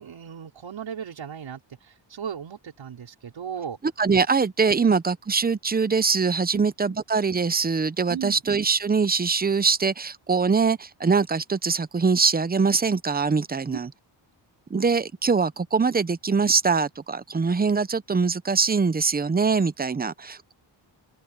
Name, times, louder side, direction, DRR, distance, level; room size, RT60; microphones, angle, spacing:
voice 1, 0.0-3.8 4.8-4.9 6.5-6.6 6.9-7.0 8.1-8.4 13.7-13.8, right 8 dB, 75° right, 4.6 m, -36 dB
voice 2, 4.0-13.9 14.7-20.5, right 5 dB, 20° right, 0.6 m, -23 dB
open air
wide cardioid pair, 165°, 46 cm